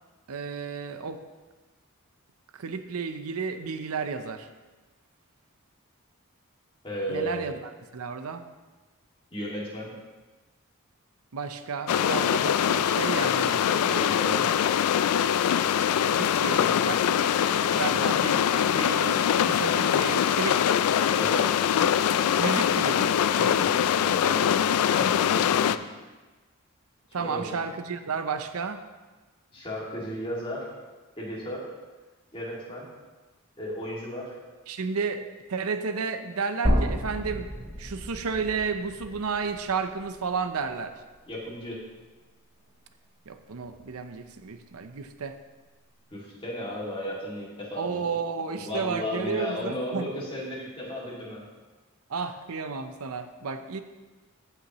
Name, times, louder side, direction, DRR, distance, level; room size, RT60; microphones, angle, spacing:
voice 1, 0.3-1.2 2.5-4.5 7.1-7.5 7.9-8.4 11.3-13.6 14.4-14.5 15.8-17.0 17.7-20.7 22.4-23.7 24.9-25.1 27.1-28.8 34.7-35.2 35.5-37.5 37.8-40.9 43.3-45.4 47.8-50.1 52.1-53.8, right 5 dB, 80° right, 9 dB, 0.6 m, -32 dB
voice 2, 6.8-7.5 9.3-9.9 13.7-14.4 17.9-18.0 21.1-21.6 23.5-25.9 27.1-27.4 29.5-30.7 31.2-31.7 32.3-32.9 33.6-34.4 41.3-41.8 46.1-48.1 48.6-51.4, equal, 25° left, -5 dB, 2.2 m, -35 dB
sound 1, 11.9-25.8, left 9 dB, 85° left, 0.3 m, -23 dB
sound 2, 36.6-40.8 41.2-41.3 42.7-42.8, equal, 35° right, 3.2 m, -31 dB
15.5 x 5.7 x 3.0 m, 1.3 s
head